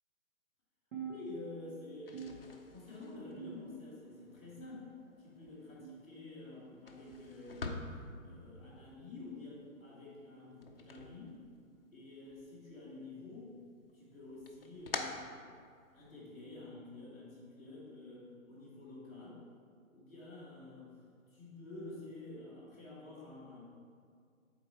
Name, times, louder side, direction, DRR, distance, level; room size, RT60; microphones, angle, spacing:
sound 1, 0.9-1.8 2.1-2.9 3.4-4.0 4.6-5.2 5.8-6.2 7.0-7.3 8.2-8.5 9.5-9.7 10.7-10.9 11.9-12.1 13.1-13.3 14.3-14.4 15.6-15.7, right 5 dB, 60° right, 1.3 m, -48 dB
voice 1, 1.0-4.9 5.2-7.9 8.2-11.4 11.9-13.5 13.9-15.2 15.9-19.4 19.9-20.9 21.3-23.6, left 2 dB, 5° right, -13 dB, 1.0 m, -49 dB
sound 2, 1.9-12.0 12.3-13.1 13.5-16.1, left 3 dB, 45° left, 0.4 m, -48 dB
6.2 x 4.1 x 4.4 m, 2.1 s
hypercardioid pair, 175°, 42 cm